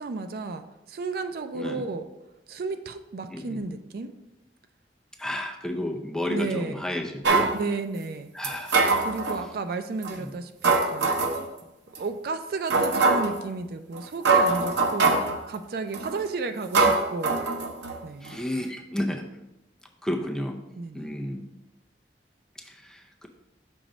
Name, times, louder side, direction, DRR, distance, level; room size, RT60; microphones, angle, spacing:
voice 1, 0.0-2.1 2.5-4.1 6.3-6.8 7.5-8.3 9.0-11.1 12.0-17.4 18.0-18.4 20.8-21.1, right 3 dB, 55° right, 8 dB, 0.4 m, -33 dB
voice 2, 1.5-1.9 3.3-3.7 5.2-7.5 8.3-8.9 10.1-10.4 18.2-19.3 20.0-20.6 20.9-21.5 22.6-23.3, left 1 dB, 5° left, 1 dB, 0.5 m, -32 dB
sound 1, 7.2-7.6 8.4-9.4 10.0-10.1 10.6-11.4 12.0-12.1 12.7-13.4 14.0-14.1 14.3-15.4 15.9-16.2 16.7-18.0 18.3-18.4, right 3 dB, 85° right, 0.7 m, -22 dB
6.2 x 3.0 x 5.2 m, 0.92 s
head